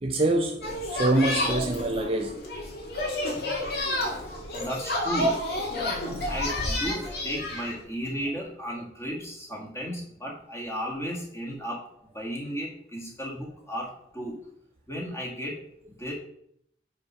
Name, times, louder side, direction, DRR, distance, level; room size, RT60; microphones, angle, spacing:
voice 1, 0.0-2.4, right 2 dB, 30° right, 0.5 m, -25 dB
Children in Playground, 0.6-7.7, left 1 dB, 60° left, 2.0 m, -30 dB
voice 2, 4.5-5.4 6.2-14.4 14.9-15.6 15.9-16.1, equal, 15° left, 1.7 m, -35 dB
5.1 x 4.9 x 5.7 m
head